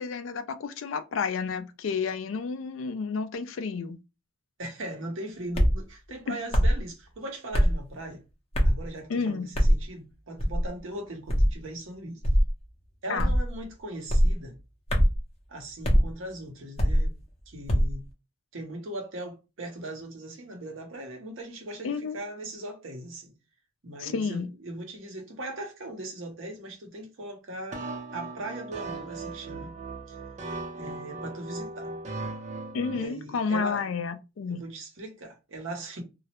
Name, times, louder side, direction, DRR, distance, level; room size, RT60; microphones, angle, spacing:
voice 1, 0.0-4.0 6.3-6.4 9.1-9.5 13.1-13.3 21.8-22.2 24.0-24.5 32.7-34.6, left 5 dB, 75° left, 0.4 m, -31 dB
voice 2, 4.6-8.2 8.6-12.2 13.0-14.6 15.5-17.1 17.5-18.0 18.5-23.3 23.8-27.8 28.1-29.7 30.1-30.2 30.7-31.9 32.9-33.9 34.5-36.0, right 1 dB, 80° right, 0.8 m, -39 dB
sound 1, 5.5-5.8 6.5-6.8 7.5-7.8 8.5-8.8 9.5-9.8 10.4-10.7 11.3-11.6 12.2-12.5 13.2-13.5 14.1-14.3 14.9-15.2 15.8-16.1 16.8-17.1 17.7-17.9, equal, 30° left, 0.6 m, -21 dB
sound 2, 27.7-33.1, right 3 dB, 35° right, 0.5 m, -38 dB
2.3 x 2.0 x 2.8 m
head